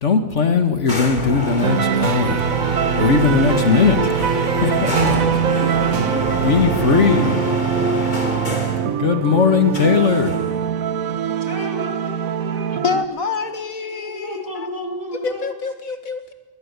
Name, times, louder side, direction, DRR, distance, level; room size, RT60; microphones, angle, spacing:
voice 1, 0.0-2.6 3.0-5.6 6.4-7.5 9.0-10.4, left 5 dB, 60° left, 8 dB, 1.9 m, -19 dB
sound 1, 0.9-8.9 9.7-10.7, equal, 35° left, 3.4 m, -26 dB
sound 2, 1.6-13.0, right 8 dB, 90° right, 1.4 m, -22 dB
voice 2, 5.5-6.4 11.4-12.8 13.5-15.5, equal, 15° right, 2 dB, 3.2 m, -33 dB
voice 3, 12.8-14.7 15.2-16.3, left 5 dB, 90° left, 8 dB, 2.3 m, -26 dB
22.0 x 20.0 x 8.2 m, 1.2 s
omnidirectional pair, 1.4 m